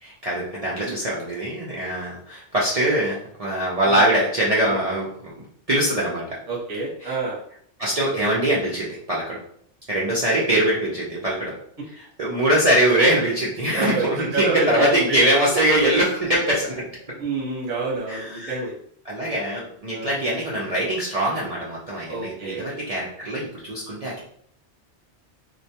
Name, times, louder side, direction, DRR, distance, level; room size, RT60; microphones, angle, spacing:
voice 1, 0.0-5.3 5.7-6.3 7.0-7.2 7.8-9.4 9.9-11.5 12.0-16.9 18.1-18.5 19.1-24.2, right 1 dB, 60° right, -6 dB, 0.3 m, -22 dB
voice 2, 6.5-7.4 13.7-15.4 17.2-18.7 19.9-20.2 22.1-22.6, right 3 dB, 40° right, -4 dB, 0.8 m, -28 dB
2.2 x 2.1 x 2.7 m, 0.64 s
omnidirectional pair, 1.2 m